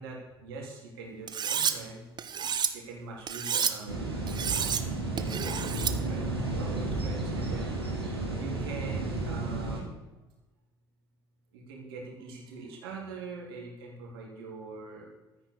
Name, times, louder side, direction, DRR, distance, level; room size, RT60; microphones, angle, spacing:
voice 1, 0.0-2.0 2.7-4.9 5.1-7.7 8.1-8.2 8.4-10.0 11.5-15.1, right 3 dB, 65° right, -1 dB, 3.9 m, -43 dB
Cutlery silverware, 1.3-1.7 2.2-2.7 3.3-3.7 4.3-4.8 5.2-5.9, right 7 dB, 35° right, 1.2 m, -30 dB
sound 1, 3.9-9.8, right 2 dB, 90° right, 2.7 m, -32 dB
12.5 x 10.0 x 6.7 m, 1.1 s
figure-of-eight pair, 60°, 13 cm